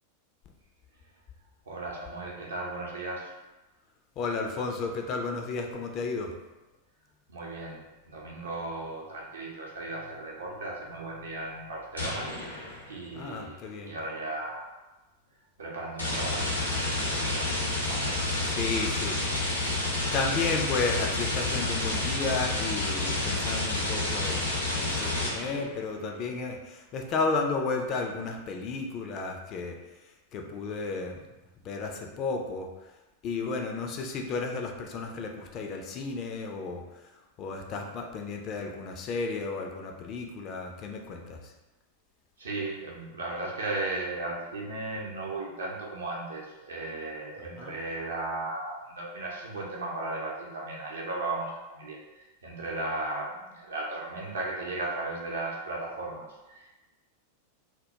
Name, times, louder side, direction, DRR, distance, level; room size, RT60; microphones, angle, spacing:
voice 1, 1.7-3.3 7.3-12.6 12.9-14.7 15.6-16.8 17.1-17.6 17.8-18.3 42.4-52.0 52.4-56.7, right 2 dB, 65° right, -3 dB, 0.6 m, -36 dB
voice 2, 4.2-6.3 13.1-14.0 18.4-19.2 19.8-29.8 30.3-31.2 31.6-32.7 33.2-36.8 37.4-41.5 47.6-47.7, left 4 dB, 35° left, 2 dB, 0.3 m, -33 dB
sound 1, 12.0-12.9 16.0-25.7, left 2 dB, 85° left, 0.6 m, -29 dB
2.2 x 2.1 x 2.8 m, 1.1 s
figure-of-eight pair, 90°, 0 cm